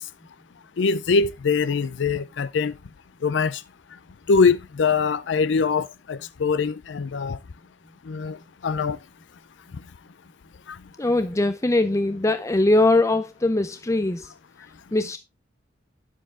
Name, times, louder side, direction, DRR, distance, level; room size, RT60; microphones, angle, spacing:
voice 1, 0.8-2.7 3.2-3.6 4.3-7.4 8.1-8.4 8.6-9.0 10.7-10.8, left 5 dB, 75° left, 0.5 m, -23 dB
voice 2, 11.0-14.3 14.9-15.2, left 2 dB, 15° left, 0.5 m, -21 dB
10.0 x 7.3 x 3.6 m
head